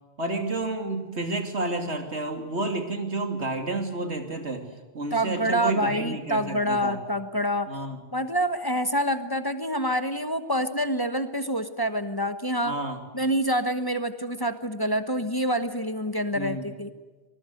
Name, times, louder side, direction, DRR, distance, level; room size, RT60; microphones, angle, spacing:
voice 1, 0.2-4.7 4.9-7.0 7.7-8.0 12.6-13.0 16.3-16.7, right 2 dB, 80° right, 5 dB, 3.1 m, -30 dB
voice 2, 5.1-7.7 8.1-12.7 13.1-16.9, equal, 20° left, 8 dB, 1.2 m, -27 dB
25.5 x 20.0 x 7.9 m, 1.3 s
omnidirectional pair, 1.1 m